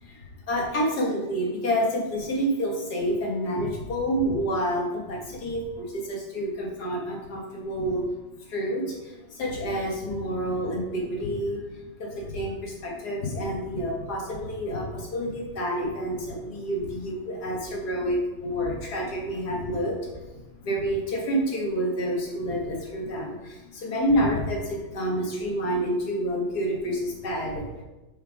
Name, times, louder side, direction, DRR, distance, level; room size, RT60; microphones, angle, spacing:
voice 1, 0.0-8.2 8.5-20.2 20.6-27.8, equal, 65° left, -1 dB, 2.1 m, -28 dB
5.7 x 5.6 x 4.7 m, 1.1 s
omnidirectional pair, 1.9 m